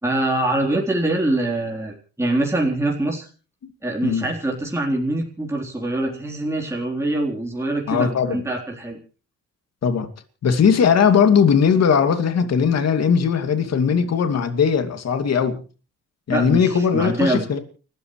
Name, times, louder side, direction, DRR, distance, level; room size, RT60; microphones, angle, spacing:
voice 1, 0.0-3.3 3.8-9.0 16.3-17.5, right 1 dB, 10° right, 3.9 m, -24 dB
voice 2, 7.9-8.5 9.8-10.1 10.4-15.6 16.3-17.6, left 6 dB, 55° left, 2.7 m, -19 dB
30.0 x 13.5 x 3.3 m
cardioid pair, 90°, 30 cm